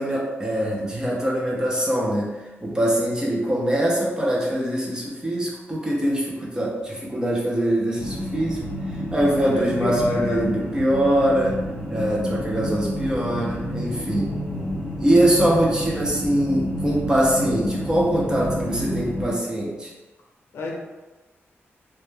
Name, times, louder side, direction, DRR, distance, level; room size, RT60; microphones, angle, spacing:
voice 1, 0.0-2.3 2.6-8.6 8.9-11.6 11.9-14.3 15.0-19.9, right 1 dB, 15° right, -4 dB, 0.5 m, -23 dB
sound 1, 8.0-19.3, equal, 20° left, 0.7 m, -30 dB
voice 2, 9.5-10.5 12.0-12.1 14.2-14.7 20.5-20.7, left 2 dB, 70° left, -2 dB, 0.5 m, -28 dB
2.1 x 2.1 x 3.1 m, 1.1 s
wide cardioid pair, 175°, 5 cm